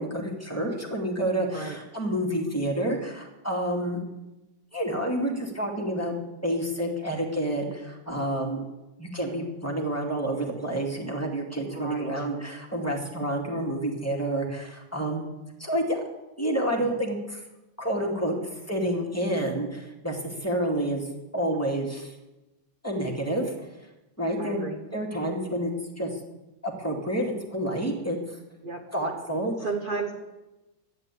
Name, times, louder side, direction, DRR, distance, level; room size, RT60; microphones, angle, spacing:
voice 1, 0.0-4.0 4.7-8.6 9.0-15.2 15.6-16.0 16.4-17.4 17.8-21.1 21.3-22.1 22.8-23.5 24.2-25.7 26.0-26.1 26.6-28.4 28.9-29.5, right 1 dB, 10° left, -1 dB, 2.3 m, -29 dB
voice 2, 11.7-12.3 16.8-16.9 24.4-24.8 28.6-28.8 29.6-30.1, right 4 dB, 30° right, 2 dB, 1.2 m, -33 dB
13.0 x 10.5 x 8.4 m, 1.0 s
omnidirectional pair, 2.0 m